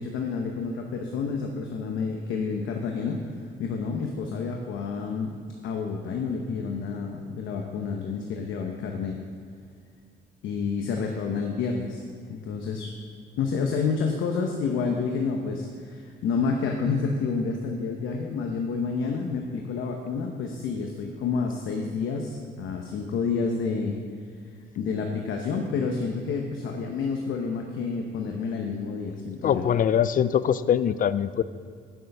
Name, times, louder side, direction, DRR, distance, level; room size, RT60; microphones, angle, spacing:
voice 1, 0.0-3.2 3.6-5.3 5.6-9.1 10.4-12.9 13.4-24.0 24.8-29.6, left 5 dB, 80° left, 2 dB, 0.9 m, -29 dB
voice 2, 29.4-31.4, left 9 dB, 45° left, 15 dB, 0.4 m, -23 dB
8.2 x 7.6 x 5.4 m, 2.2 s
cardioid pair, 90°, 20 cm